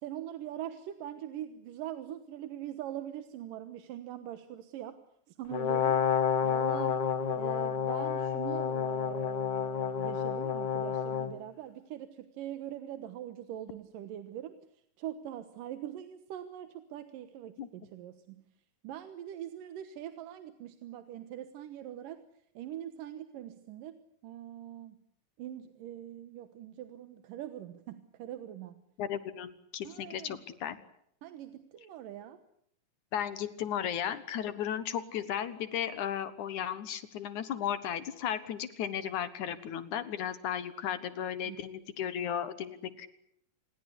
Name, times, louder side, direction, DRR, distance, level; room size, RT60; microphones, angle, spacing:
voice 1, 0.0-5.0 5.3-6.1 6.4-7.1 7.3-14.6 15.0-18.4 18.8-22.2 22.6-25.0 25.4-28.8 29.8-30.4 31.2-32.4 41.5-41.6, right 11 dB, 75° right, 10 dB, 2.8 m, -43 dB
Brass instrument, 5.5-11.3, left 7 dB, 50° left, 1.4 m, -30 dB
voice 2, 29.0-30.8 33.1-43.1, left 9 dB, 65° left, 13 dB, 2.5 m, -35 dB
27.0 x 21.0 x 8.4 m, 0.71 s
omnidirectional pair, 4.0 m